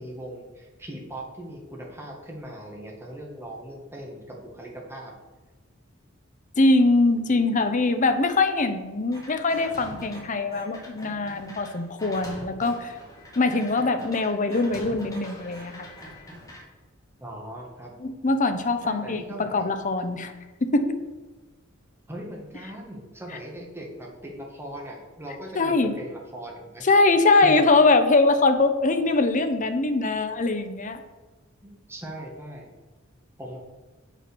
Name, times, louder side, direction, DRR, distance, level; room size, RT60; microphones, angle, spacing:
voice 1, 0.0-5.1 17.2-17.9 18.8-19.7 22.1-26.9 27.4-27.6 31.6-32.7 33.4-33.6, right 1 dB, 10° right, -1 dB, 1.7 m, -39 dB
voice 2, 6.6-12.9 13.4-15.9 18.0-20.3 20.6-21.0 25.5-25.9 26.8-31.0, left 3 dB, 40° left, 8 dB, 0.8 m, -22 dB
sound 1, 9.1-10.2 10.5-16.6, equal, 15° left, 2.5 m, -43 dB
7.6 x 5.8 x 6.1 m, 1.2 s
head